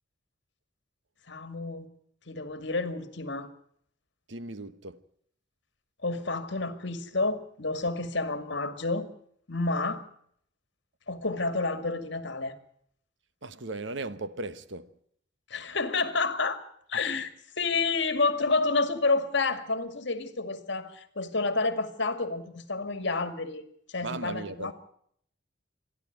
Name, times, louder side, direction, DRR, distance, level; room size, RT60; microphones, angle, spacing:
voice 1, 1.3-1.9 2.3-3.5 6.0-9.1 9.5-10.0 11.1-12.6 15.5-16.6 16.9-17.3 17.6-23.6 23.9-24.7, left 3 dB, 60° left, 2.1 m, -29 dB
voice 2, 4.3-5.0 13.4-14.9 24.0-24.7, right 2 dB, 65° right, 1.1 m, -37 dB
27.0 x 11.0 x 9.3 m
head